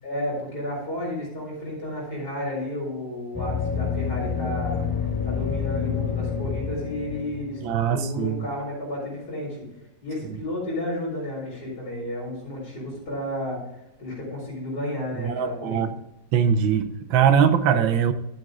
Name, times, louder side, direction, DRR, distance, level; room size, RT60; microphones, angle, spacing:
voice 1, 0.0-4.9 5.2-7.6 7.9-9.7 10.0-13.6 14.0-15.9, left 1 dB, 55° left, -3 dB, 5.1 m, -32 dB
sound 1, 3.3-8.1, left 6 dB, 10° left, 1.2 m, -28 dB
voice 2, 7.6-8.5 15.2-15.9 16.3-18.1, right 7 dB, 80° right, 10 dB, 1.6 m, -21 dB
12.5 x 7.9 x 3.7 m, 0.90 s
omnidirectional pair, 2.1 m